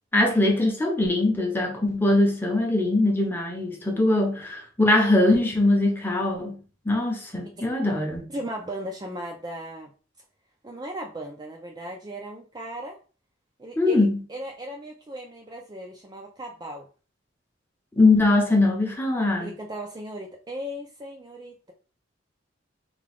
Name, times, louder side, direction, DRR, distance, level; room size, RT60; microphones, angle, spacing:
voice 1, 0.1-8.3 13.8-14.2 18.0-19.5, left 2 dB, 10° left, 0.7 m, -22 dB
voice 2, 8.3-9.9 10.6-13.0 13.6-16.9 19.4-21.7, right 1 dB, 20° right, 0.4 m, -37 dB
3.6 x 2.3 x 3.4 m
head